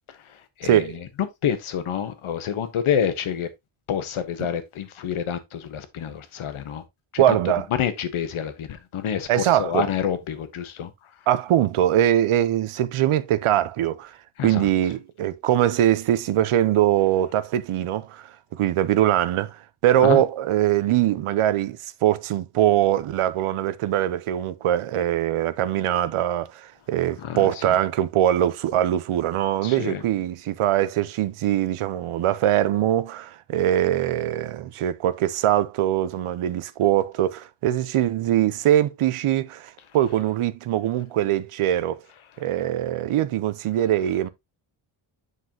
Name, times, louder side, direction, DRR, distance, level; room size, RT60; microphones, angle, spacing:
voice 1, 0.6-1.0 7.2-7.7 9.3-9.9 11.3-14.2 14.4-42.0 42.4-44.3, right 12 dB, 90° right, 0.8 m, -22 dB
voice 2, 1.4-3.5 3.9-6.8 7.1-7.4 7.8-10.9 14.4-14.7 20.0-20.2 27.2-27.8 29.6-30.0, left 8 dB, 80° left, 1.2 m, -28 dB
7.7 x 5.5 x 2.8 m
wide cardioid pair, 145°, 49 cm